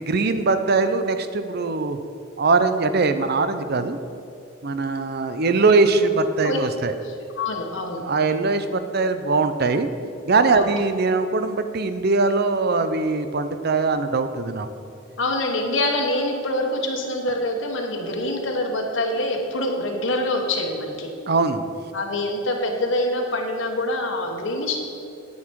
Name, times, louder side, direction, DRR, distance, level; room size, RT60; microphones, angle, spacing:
voice 1, 0.0-2.0 2.4-4.0 4.6-6.9 8.0-9.9 10.2-14.7 21.3-21.6, right 3 dB, 55° right, 10 dB, 0.6 m, -21 dB
voice 2, 7.0-8.0 10.5-10.7 15.2-21.1 21.9-24.8, left 1 dB, 70° left, 2 dB, 1.4 m, -25 dB
9.7 x 9.6 x 4.7 m, 2.7 s
head